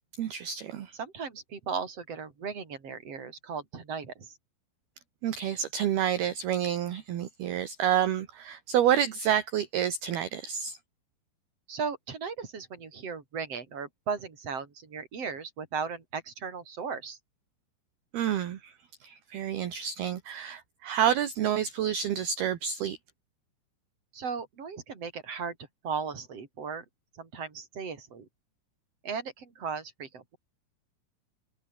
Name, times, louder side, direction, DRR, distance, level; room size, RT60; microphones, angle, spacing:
voice 1, 0.2-1.0 5.2-10.8 18.1-18.7 19.0-23.0, right 10 dB, 60° right, 3.3 m, -29 dB
voice 2, 1.0-4.3 11.7-17.2 24.1-25.6 25.8-26.8 27.2-28.3 29.0-30.4, right 5 dB, 30° right, 4.9 m, -36 dB
omnidirectional pair, 5.8 m